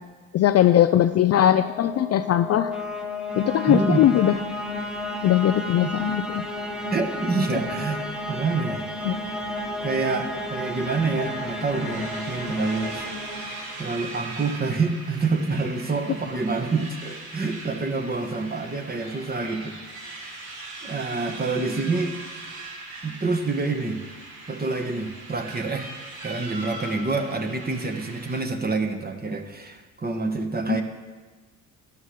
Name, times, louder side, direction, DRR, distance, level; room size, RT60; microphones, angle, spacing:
voice 1, 0.3-2.7 3.4-4.4 5.2-6.4 9.1-9.2 30.7-30.8, left 11 dB, 40° left, 10 dB, 0.4 m, -20 dB
sound 1, 1.3-14.3, left 2 dB, ahead, 1.5 m, -32 dB
voice 2, 3.7-4.0 5.8-6.0 6.9-9.2 9.8-13.1 13.4-20.3 20.8-22.2 23.0-24.0 24.5-25.9 26.2-30.8, right 3 dB, 20° right, 6 dB, 1.3 m, -27 dB
sound 2, 10.1-28.4, right 2 dB, 60° right, 2.5 m, -40 dB
12.5 x 11.5 x 3.3 m, 1.3 s
hypercardioid pair, 50°, 42 cm